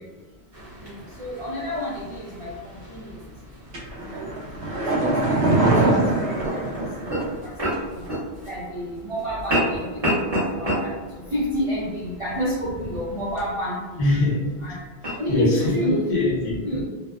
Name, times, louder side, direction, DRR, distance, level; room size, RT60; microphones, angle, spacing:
sound 1, 0.5-15.7, equal, 35° right, 1.0 m, -32 dB
voice 1, 0.8-3.2 4.0-4.3 4.9-6.7 7.0-7.1 7.4-7.5 7.8-7.9 8.4-10.0 10.3-11.0 11.3-14.1 14.6-14.8 15.2-16.1 16.6-16.8, equal, 55° right, -8 dB, 0.4 m, -29 dB
sound 2, 3.7-7.4 7.7-7.8, right 2 dB, 75° right, 0.9 m, -22 dB
voice 2, 14.0-16.8, left 2 dB, 75° left, -5 dB, 1.1 m, -24 dB
2.7 x 2.1 x 2.3 m, 1.3 s
omnidirectional pair, 1.1 m